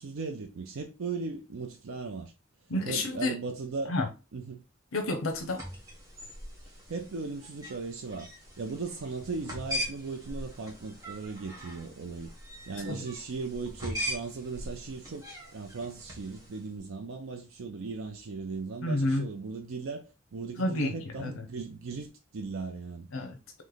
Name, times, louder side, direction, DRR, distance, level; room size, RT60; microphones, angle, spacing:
voice 1, 0.0-2.3 2.8-3.9 4.3-4.6 6.6-8.3 8.6-12.3 12.7-15.2 15.5-23.1, right 4 dB, 80° right, 0.5 m, -37 dB
voice 2, 2.7-3.3 3.9-4.1 4.9-5.6 12.8-13.0 18.8-19.3 20.6-21.4 23.1-23.6, left 2 dB, 85° left, 0.7 m, -30 dB
sound 1, 5.3-16.7, equal, 15° right, 1.2 m, -41 dB
3.1 x 3.1 x 3.9 m
head